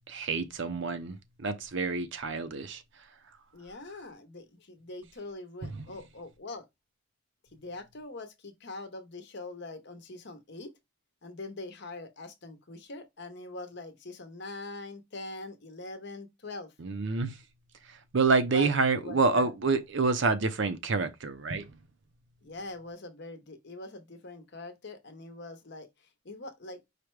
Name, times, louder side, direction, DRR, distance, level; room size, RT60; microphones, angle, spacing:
voice 1, 0.1-2.8 5.6-5.8 16.8-17.4 18.1-21.7, right 4 dB, 60° right, 0.6 m, -28 dB
voice 2, 3.5-6.6 7.5-10.7 11.2-16.7 18.5-19.5 22.4-25.9 26.2-26.8, left 2 dB, 55° left, 0.9 m, -43 dB
5.0 x 2.2 x 4.6 m
head